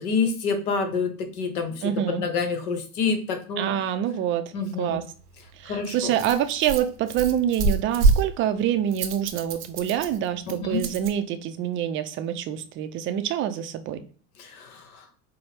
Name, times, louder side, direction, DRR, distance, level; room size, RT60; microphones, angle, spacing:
voice 1, 0.0-3.8 4.5-5.0 5.6-6.1 10.5-10.8 14.4-15.0, left 5 dB, 75° left, 6 dB, 0.9 m, -28 dB
voice 2, 1.8-2.2 3.6-5.0 5.6-14.0, right 10 dB, 30° right, 9 dB, 0.3 m, -26 dB
Rattle, 5.1-11.1, right 3 dB, 90° right, 0.6 m, -28 dB
4.4 x 2.1 x 3.2 m, 0.41 s
hypercardioid pair, 85°, 45 cm